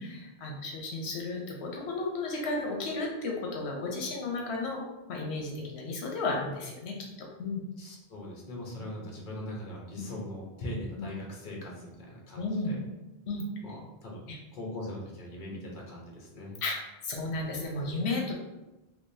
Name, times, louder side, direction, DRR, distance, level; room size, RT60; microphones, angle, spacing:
voice 1, 0.0-4.8 5.1-7.6 8.8-8.9 10.0-10.1 11.0-11.1 12.4-12.8 13.3-13.8 14.3-14.4 16.6-18.3, left 2 dB, 85° left, 0 dB, 0.9 m, -34 dB
voice 2, 7.8-12.8 13.6-13.8 14.0-14.3 14.5-16.6, left 1 dB, 50° left, -2 dB, 1.0 m, -40 dB
3.6 x 2.9 x 2.6 m, 1.0 s
omnidirectional pair, 1.1 m